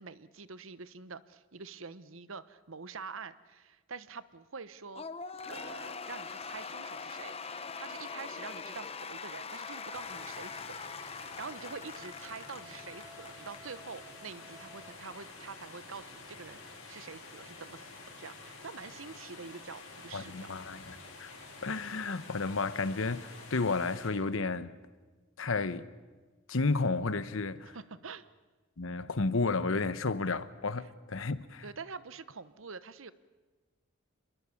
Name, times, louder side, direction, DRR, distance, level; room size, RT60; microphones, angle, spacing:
voice 1, 0.0-5.1 5.5-10.8 11.1-20.5 27.7-28.3 30.8-30.9 31.6-33.1, right 5 dB, 65° right, 15 dB, 0.9 m, -46 dB
Cheering / Applause / Crowd, 4.9-13.6, left 5 dB, 30° left, 0.9 m, -42 dB
Wind instrument woodwind instrument, 9.5-15.0, left 1 dB, 10° right, 2.4 m, -56 dB
sound 1, 9.9-24.1, left 3 dB, 85° left, 6.5 m, -49 dB
voice 2, 20.1-21.3 21.6-24.7 25.4-25.9 26.5-27.8 28.8-31.6, left 3 dB, 70° left, 14 dB, 1.0 m, -32 dB
28.0 x 21.0 x 7.1 m, 1.3 s
head